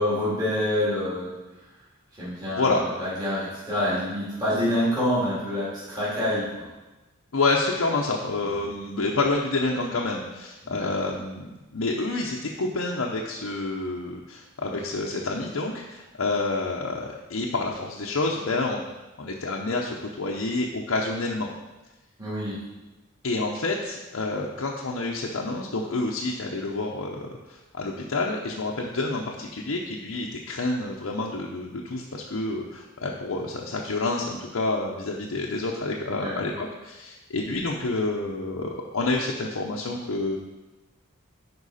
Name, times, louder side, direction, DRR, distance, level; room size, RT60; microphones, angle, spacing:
voice 1, 0.0-1.3 2.2-6.6 10.6-11.1 22.2-22.6 36.1-36.4, left 1 dB, 20° right, -12 dB, 2.9 m, -27 dB
voice 2, 7.3-18.8 19.2-21.5 23.2-40.4, left 2 dB, 70° left, -2 dB, 0.7 m, -28 dB
9.8 x 4.7 x 4.1 m, 1.1 s
head